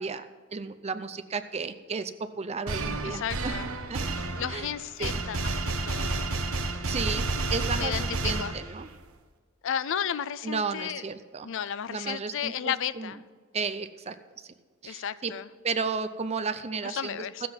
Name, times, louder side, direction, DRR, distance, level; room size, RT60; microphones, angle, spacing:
voice 1, 0.0-3.5 3.9-4.1 4.5-4.7 5.0-5.2 6.9-8.9 10.4-11.5 11.9-13.1 13.5-14.5 14.8-15.3 15.6-17.5, right 4 dB, 30° right, 10 dB, 0.6 m, -33 dB
sound 1, 2.7-9.0, right 2 dB, 75° right, 1.0 m, -31 dB
voice 2, 3.0-3.7 4.4-6.3 7.8-8.0 8.4-8.5 9.6-11.0 11.4-13.2 14.9-15.5 16.8-17.4, left 9 dB, 60° left, 16 dB, 0.4 m, -33 dB
14.0 x 7.6 x 6.0 m, 1.5 s
head